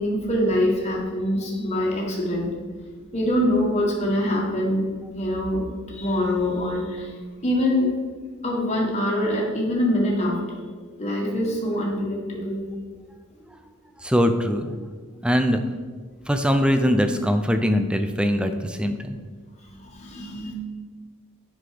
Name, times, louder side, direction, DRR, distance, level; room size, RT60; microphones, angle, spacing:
voice 1, 0.0-2.5 3.1-4.8 5.1-7.1 7.4-8.0 8.4-10.6 11.0-12.6 19.7-20.5, left 1 dB, 30° left, -3 dB, 1.6 m, -24 dB
voice 2, 14.0-14.8 15.2-15.6 16.3-19.2, equal, 5° right, 7 dB, 0.5 m, -22 dB
7.9 x 5.9 x 5.0 m, 1.5 s
head